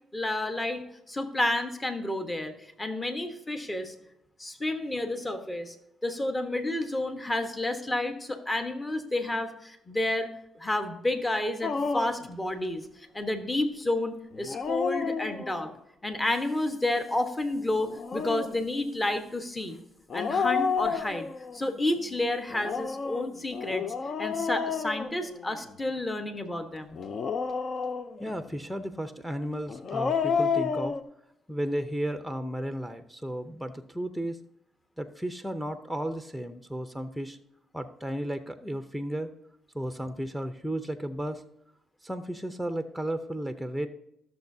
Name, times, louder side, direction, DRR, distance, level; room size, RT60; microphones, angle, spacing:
voice 1, 0.1-3.9 4.4-5.7 6.0-10.3 10.6-15.7 16.0-19.8 20.1-23.9 24.2-27.0, left 1 dB, 20° left, 7 dB, 1.2 m, -30 dB
Dog, 11.6-12.3 14.3-15.7 17.8-18.6 20.1-21.6 22.5-25.7 26.9-28.3 29.7-31.0, left 5 dB, 55° left, 0.6 m, -30 dB
voice 2, 28.2-31.0 31.5-34.4 35.0-37.4 37.7-39.3 39.7-41.4 42.0-43.9, equal, ahead, 9 dB, 0.7 m, -34 dB
14.0 x 6.7 x 2.7 m, 0.80 s
supercardioid pair, 65°, 0 cm